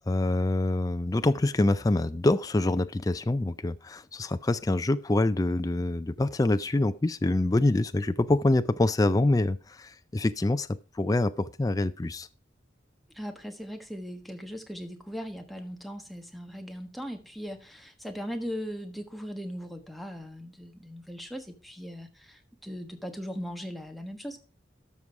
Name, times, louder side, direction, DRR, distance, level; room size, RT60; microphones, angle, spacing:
voice 1, 0.0-12.3, left 2 dB, 20° left, 0.4 m, -26 dB
voice 2, 13.1-24.4, equal, ahead, 1.3 m, -39 dB
12.5 x 6.2 x 4.7 m
head